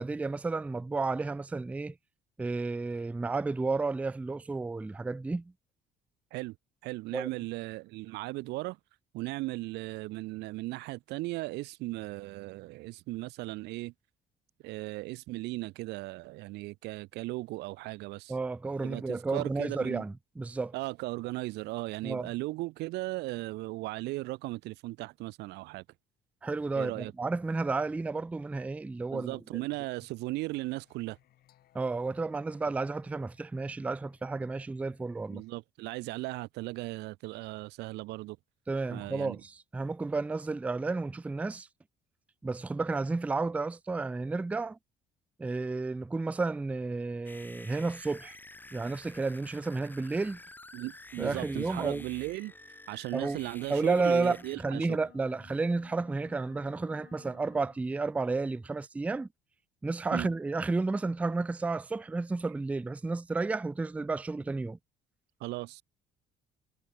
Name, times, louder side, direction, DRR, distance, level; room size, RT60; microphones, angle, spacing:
voice 1, 0.0-2.0 2.4-5.5 7.1-7.3 18.3-20.7 22.0-22.3 26.4-29.6 31.7-35.4 38.7-41.7 42.4-44.8 45.4-48.4 48.7-50.4 51.2-52.0 53.1-53.4 53.7-59.3 59.8-64.8, right 3 dB, 10° right, 0.3 m, -32 dB
voice 2, 6.8-8.8 9.1-13.9 14.6-18.3 18.8-20.0 20.7-25.8 26.8-27.1 29.1-31.2 35.3-38.4 38.9-39.4 50.7-52.5 52.9-55.0 60.1-60.3 65.4-65.8, right 20 dB, 85° right, 0.7 m, -37 dB
Singing, 30.5-35.5, left 13 dB, 65° left, 4.2 m, -66 dB
sound 1, 47.2-54.6, left 2 dB, 10° left, 4.4 m, -50 dB
sound 2, 53.2-57.8, left 19 dB, 85° left, 5.2 m, -58 dB
cardioid pair, 110°, 17 cm